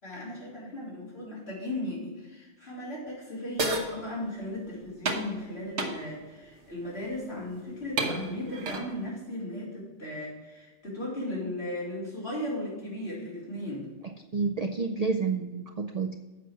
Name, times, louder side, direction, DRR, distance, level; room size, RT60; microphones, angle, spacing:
voice 1, 0.0-13.9, left 1 dB, 60° left, -7 dB, 4.0 m, -36 dB
sound 1, 3.6-3.9 5.1-5.3 5.8-6.0 7.1-7.3 8.0-8.9, right 2 dB, 75° right, 1.4 m, -30 dB
voice 2, 14.3-16.2, right 4 dB, 50° right, 5 dB, 0.5 m, -29 dB
8.1 x 5.8 x 6.0 m, 1.2 s
omnidirectional pair, 1.2 m